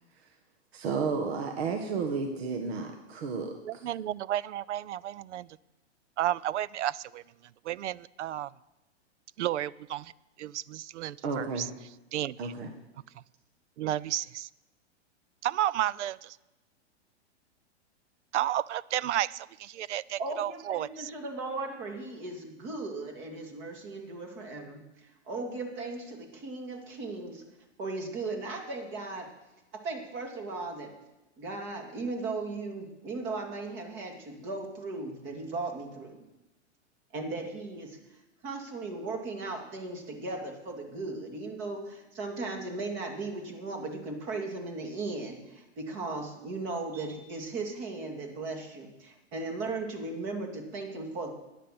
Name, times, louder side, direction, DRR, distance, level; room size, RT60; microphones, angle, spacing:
voice 1, 0.7-3.8 11.2-11.7 12.4-12.7, right 5 dB, 60° right, 5 dB, 1.6 m, -32 dB
voice 2, 3.6-5.6 6.2-7.2 7.6-8.5 9.4-10.1 10.4-11.7 12.1-12.5 13.8-14.5 15.4-16.4 18.3-21.1, right 12 dB, 80° right, 22 dB, 0.5 m, -32 dB
voice 3, 20.2-27.4 27.8-29.3 29.8-30.9 31.4-36.2 37.1-38.0 38.4-51.3, right 3 dB, 35° right, 3 dB, 2.6 m, -37 dB
13.0 x 9.9 x 6.0 m, 0.99 s
hypercardioid pair, 145°, 35 cm